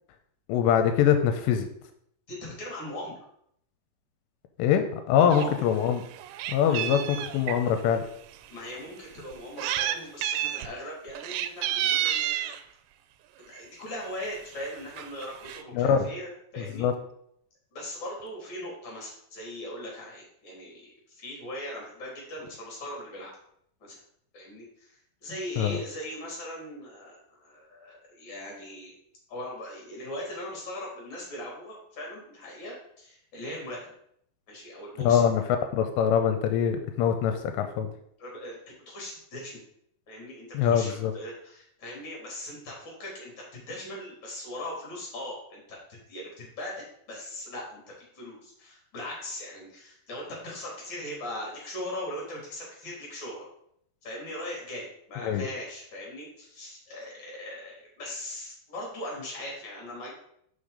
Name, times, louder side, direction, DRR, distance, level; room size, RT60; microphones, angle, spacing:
voice 1, 0.5-1.7 4.6-6.0 6.5-8.0 15.7-16.1 16.6-16.9 25.6-25.8 35.0-35.4 35.7-37.9 40.5-41.1 55.2-55.5, left 8 dB, 85° left, 7 dB, 2.8 m, -23 dB
voice 2, 2.3-3.2 5.2-5.6 6.7-7.1 8.5-12.6 13.5-16.8 17.7-23.3 23.8-24.0 24.3-28.9 29.3-33.8 34.5-35.3 38.2-39.6 40.1-45.8 46.1-53.4 54.0-60.1, left 1 dB, 30° left, -3 dB, 3.2 m, -40 dB
Meow, 5.3-5.5 5.9-7.6 8.3-8.4 9.3-10.0 10.2-10.7 11.1-12.6 13.6-13.8 14.2-14.3 14.5-14.7 15.0-15.6, right 11 dB, 85° right, 2.8 m, -30 dB
6.2 x 5.6 x 5.0 m, 0.70 s
omnidirectional pair, 5.0 m